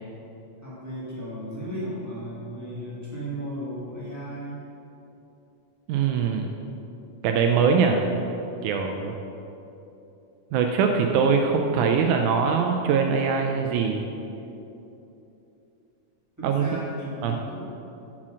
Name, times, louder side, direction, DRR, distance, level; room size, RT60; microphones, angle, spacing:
voice 1, 0.6-4.6 16.4-17.6, right 1 dB, 10° right, -8 dB, 0.7 m, -35 dB
voice 2, 5.9-6.5 7.2-8.0 8.6-9.1 10.5-14.1 16.4-16.7 17.2-17.4, right 6 dB, 80° right, 3 dB, 1.9 m, -22 dB
7.3 x 5.8 x 6.2 m, 2.9 s
omnidirectional pair, 3.7 m